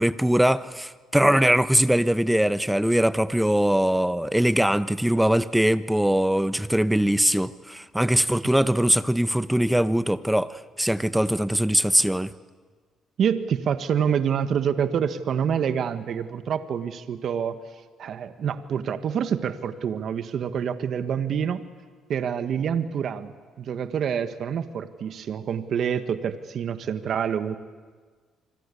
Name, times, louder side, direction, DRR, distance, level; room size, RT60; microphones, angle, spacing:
voice 1, 0.0-12.3, right 1 dB, 5° right, 13 dB, 1.1 m, -22 dB
voice 2, 13.2-17.6 18.0-21.6 22.1-27.6, right 8 dB, 60° right, 10 dB, 1.4 m, -27 dB
26.0 x 25.0 x 8.4 m, 1.5 s
supercardioid pair, 75°, 0 cm